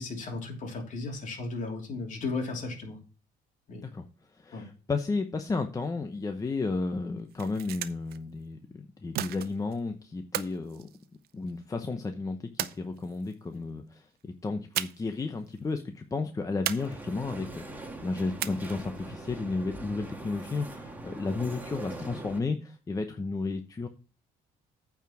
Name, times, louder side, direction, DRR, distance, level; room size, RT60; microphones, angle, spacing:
voice 1, 0.0-3.0 3.7-3.9 4.5-4.7, left 3 dB, 50° left, 1 dB, 3.0 m, -35 dB
voice 2, 4.3-10.9 11.3-23.9, left 3 dB, 20° left, 6 dB, 0.8 m, -33 dB
sound 1, 7.2-8.2 9.1-9.8 10.3-11.6 12.6-13.3 14.7-15.2 15.5-15.6 16.7-17.4 18.4-19.0, right 13 dB, 65° right, 0.6 m, -35 dB
sound 2, 16.8-22.4, right 2 dB, 10° right, 1.7 m, -42 dB
8.9 x 4.8 x 6.0 m, 0.36 s
cardioid pair, 110°, 17 cm